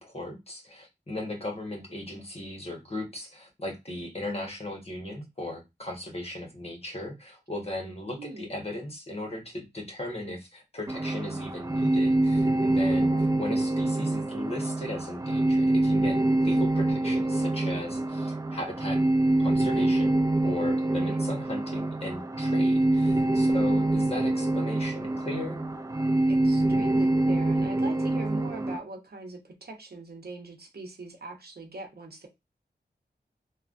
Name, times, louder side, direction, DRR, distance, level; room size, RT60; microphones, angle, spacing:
voice 1, 0.0-13.1 13.4-19.0 19.4-20.2 20.4-25.7, left 1 dB, 35° left, 1.3 m, -37 dB
voice 2, 8.2-8.5 12.9-13.3 20.9-21.2 23.7-24.0 26.3-32.3, right 2 dB, 65° right, 0.8 m, -41 dB
sound 1, 10.9-28.8, right 2 dB, 20° right, 0.3 m, -25 dB
3.2 x 2.3 x 2.5 m
wide cardioid pair, 55°, 18 cm